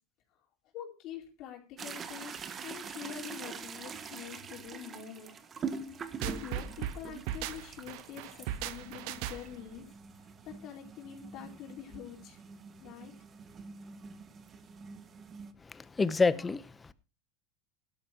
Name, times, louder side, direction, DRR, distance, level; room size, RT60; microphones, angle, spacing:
voice 1, 0.7-5.4 6.2-9.9 10.2-12.4 12.8-13.1, left 10 dB, 55° left, 4.4 m, -46 dB
sound 1, 1.8-15.5, right 5 dB, 30° right, 1.4 m, -44 dB
sound 2, 6.2-9.7, right 11 dB, 65° right, 1.0 m, -37 dB
voice 2, 15.6-16.9, left 4 dB, 15° left, 0.9 m, -29 dB
16.5 x 12.0 x 3.0 m
supercardioid pair, 105°, 0 cm